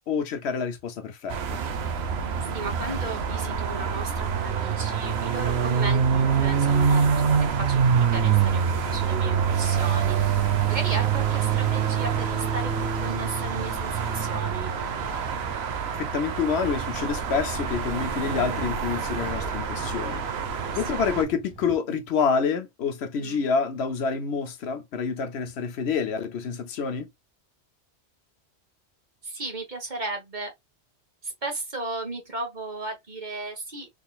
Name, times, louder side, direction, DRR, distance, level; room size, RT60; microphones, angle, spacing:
voice 1, 0.1-1.6 16.0-20.2 20.7-27.1, left 6 dB, 70° left, 0.9 m, -27 dB
sound 1, 1.3-21.2, right 7 dB, 70° right, 0.9 m, -25 dB
voice 2, 2.5-8.6 8.9-14.7 20.5-21.0 23.1-23.5 29.2-30.5 31.2-34.0, right 2 dB, 45° right, 1.3 m, -35 dB
sound 2, 6.2-21.8, right 2 dB, 20° right, 1.6 m, -44 dB
3.8 x 3.3 x 2.3 m
omnidirectional pair, 1.2 m